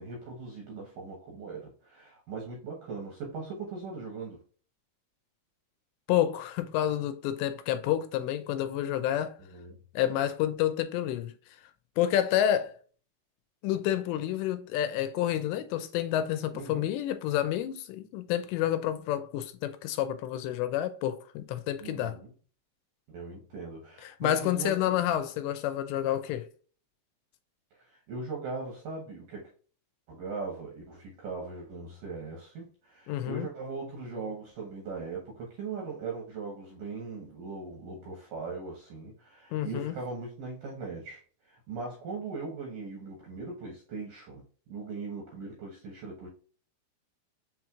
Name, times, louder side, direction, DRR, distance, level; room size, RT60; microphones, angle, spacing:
voice 1, 0.0-4.4 9.4-9.8 16.5-16.9 21.8-22.3 23.1-25.0 27.7-29.5 30.1-44.4 44.7-46.3, right 4 dB, 70° right, 2.0 m, -39 dB
voice 2, 6.1-9.4 10.0-11.3 12.0-12.8 13.6-22.2 24.0-26.5 33.1-33.5 39.5-40.0, left 11 dB, 85° left, 2.7 m, -29 dB
6.8 x 3.0 x 2.3 m
omnidirectional pair, 5.1 m